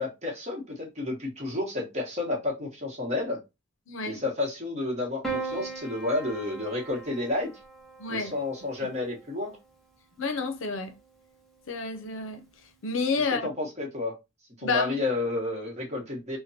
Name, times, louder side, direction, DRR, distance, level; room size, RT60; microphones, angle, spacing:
voice 1, 0.0-3.4 4.1-7.5 8.1-9.6 13.2-14.1 14.6-16.4, left 2 dB, 35° right, 1.1 m, -31 dB
voice 2, 3.9-4.2 8.0-8.3 10.2-11.0 11.7-12.4 12.8-13.5 14.6-15.0, left 4 dB, 70° left, 0.6 m, -29 dB
Piano, 5.2-9.7 10.9-11.6, right 4 dB, ahead, 0.7 m, -39 dB
3.3 x 2.2 x 2.7 m
head